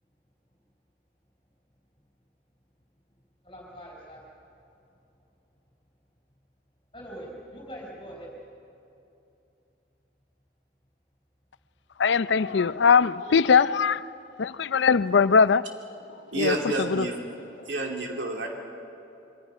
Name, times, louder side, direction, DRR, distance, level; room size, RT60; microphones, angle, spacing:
voice 1, 3.4-4.3 6.9-8.3, equal, 30° left, 4.3 m, -42 dB
voice 2, 12.0-14.0 14.4-15.7 16.4-16.5 16.9-17.1, left 6 dB, 80° left, 0.5 m, -20 dB
voice 3, 16.3-17.2 17.7-18.5, right 1 dB, 80° right, 2.8 m, -29 dB
27.0 x 24.0 x 5.6 m
head